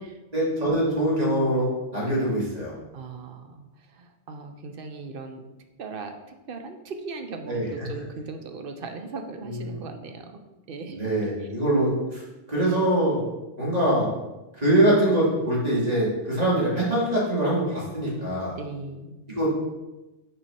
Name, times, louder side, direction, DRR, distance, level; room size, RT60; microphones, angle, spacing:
voice 1, 0.3-2.7 7.5-7.9 9.4-9.8 10.9-12.2 12.5-13.2 13.6-14.1 14.6-18.5 19.3-19.5, right 1 dB, 35° right, -7 dB, 2.5 m, -23 dB
voice 2, 2.9-3.6 3.9-5.5 5.8-10.4 10.7-11.5 18.6-19.2, right 4 dB, 60° right, 6 dB, 0.9 m, -38 dB
6.1 x 4.7 x 4.3 m, 1.0 s
omnidirectional pair, 1.1 m